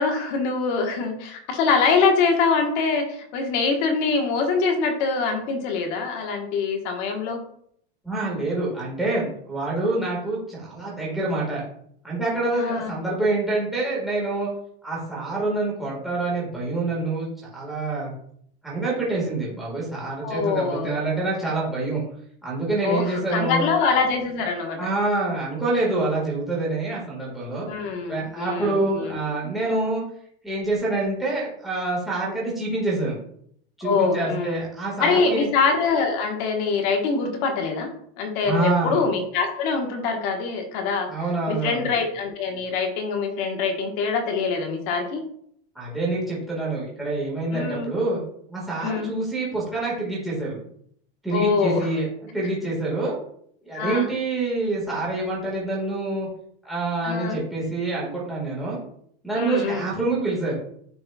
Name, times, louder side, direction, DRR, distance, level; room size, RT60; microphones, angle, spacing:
voice 1, 0.0-7.4 12.5-12.9 20.2-20.9 22.8-24.8 27.7-29.2 33.8-34.6 35.0-37.9 38.2-41.1 41.5-45.2 47.5-47.9 48.8-49.1 51.3-51.9 53.7-54.1 57.0-57.4 59.4-59.9, left 4 dB, 50° left, 3 dB, 1.4 m, -24 dB
voice 2, 8.0-11.6 12.0-14.5 14.8-17.3 17.5-18.1 18.6-22.0 22.4-23.7 24.8-27.7 28.1-30.0 30.4-33.2 33.8-35.5 38.4-39.0 41.1-41.9 45.7-48.2 48.5-50.6 51.2-52.1 52.3-53.2 53.6-56.3 56.6-58.8 59.2-60.6, right 2 dB, ahead, -6 dB, 1.7 m, -26 dB
10.0 x 4.3 x 2.3 m, 0.68 s
supercardioid pair, 165°, 32 cm